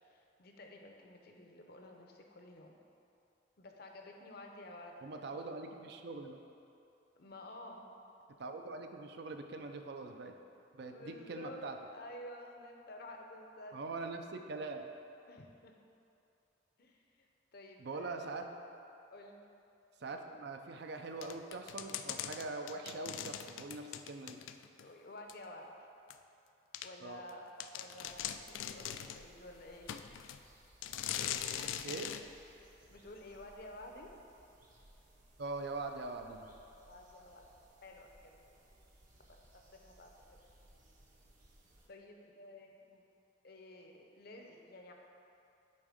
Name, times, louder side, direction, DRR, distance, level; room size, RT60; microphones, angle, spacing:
voice 1, 0.0-2.7 3.6-5.4 7.2-7.9 10.8-11.6 11.9-13.8 15.3-15.7 16.8-17.3 17.5-18.3 19.1-19.5 24.8-25.7 26.8-29.9 32.9-34.1 36.9-37.5 37.8-38.6 39.3-39.4 39.7-40.1 41.9-43.1 43.4-44.9, left 1 dB, 50° left, 2 dB, 0.7 m, -52 dB
voice 2, 5.0-6.4 8.4-10.3 10.7-11.8 13.7-14.9 17.8-18.5 20.0-24.4 27.0-27.2 31.8-32.1 35.4-36.5, right 3 dB, 55° right, 5 dB, 0.5 m, -43 dB
sound 1, 21.2-24.9 25.3-25.4 26.1-26.2 26.7-26.9 27.3-27.4 27.6-29.2 29.9-30.4 30.8-32.2, left 10 dB, 80° left, 0.3 m, -41 dB
sound 2, 28.1-41.9, right 1 dB, 40° right, 1.0 m, -63 dB
8.6 x 3.6 x 5.0 m, 2.7 s
head